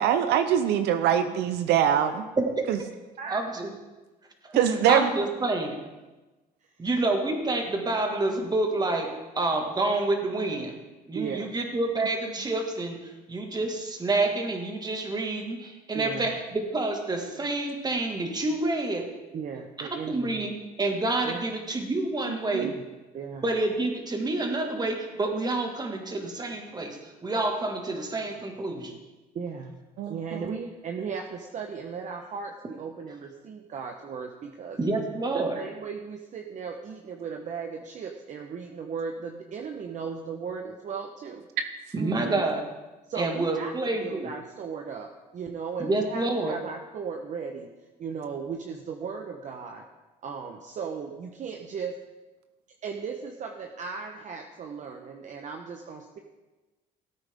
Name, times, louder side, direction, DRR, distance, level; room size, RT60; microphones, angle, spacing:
voice 1, 0.0-2.2 2.7-2.8 4.5-5.1 22.3-22.7 30.0-30.6 42.0-42.4, right 9 dB, 80° right, 8 dB, 0.8 m, -24 dB
voice 2, 2.4-2.9 3.3-3.7 4.4-4.6 4.9-5.8 6.8-9.1 9.4-10.7 11.1-13.0 13.3-19.1 19.8-22.7 23.4-29.0 34.8-35.6 41.9-42.6 43.2-44.3 45.8-46.5, right 2 dB, 25° right, 3 dB, 1.9 m, -28 dB
voice 3, 11.1-11.5 15.9-16.3 19.3-20.4 21.2-21.4 22.6-22.7 23.1-23.4 29.3-29.7 30.1-34.8 35.3-41.5 43.1-43.7 44.0-47.7 48.0-49.8 50.2-51.9 52.8-56.2, right 6 dB, 45° right, 3 dB, 1.0 m, -36 dB
17.0 x 8.9 x 3.6 m, 1.1 s
cardioid pair, 110°, 17 cm